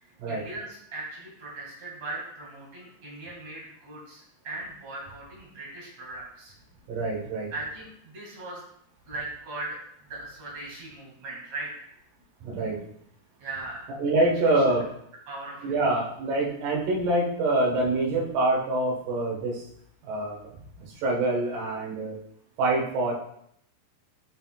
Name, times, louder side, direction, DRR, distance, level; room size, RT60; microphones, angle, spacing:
voice 1, 0.0-6.5 7.5-8.6 9.1-11.9 13.4-13.8 14.2-14.8 15.3-15.9, right 2 dB, 45° right, -4 dB, 2.6 m, -39 dB
voice 2, 6.9-7.5 12.4-12.8 14.0-14.9 15.6-19.6 20.0-20.5 20.8-22.2 22.6-23.1, right 2 dB, 65° right, -2 dB, 2.3 m, -25 dB
9.3 x 6.6 x 2.4 m, 0.71 s
omnidirectional pair, 5.8 m